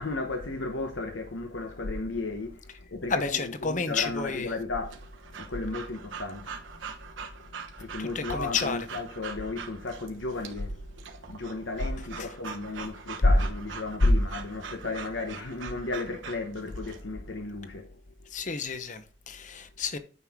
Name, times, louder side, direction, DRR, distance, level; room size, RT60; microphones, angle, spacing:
voice 1, 0.0-6.7 7.1-7.5 7.8-10.9 11.3-17.9, left 2 dB, 75° left, 1.0 m, -31 dB
voice 2, 3.1-4.5 8.0-8.8 12.2-12.3 18.3-20.0, left 5 dB, 40° left, 0.8 m, -31 dB
Breathing / Dog, 4.9-17.0, right 6 dB, 85° right, 1.3 m, -43 dB
9.4 x 6.2 x 3.7 m
head